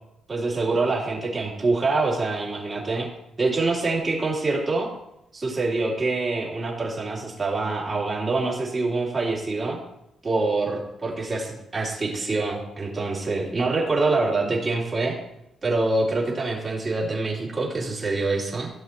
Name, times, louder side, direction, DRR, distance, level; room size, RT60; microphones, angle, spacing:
voice 1, 0.3-3.1 3.4-4.9 5.3-9.8 10.2-15.2 15.6-18.7, right 3 dB, 30° right, -4 dB, 3.5 m, -25 dB
16.0 x 6.5 x 3.1 m, 0.83 s
cardioid pair, 90°, 0 cm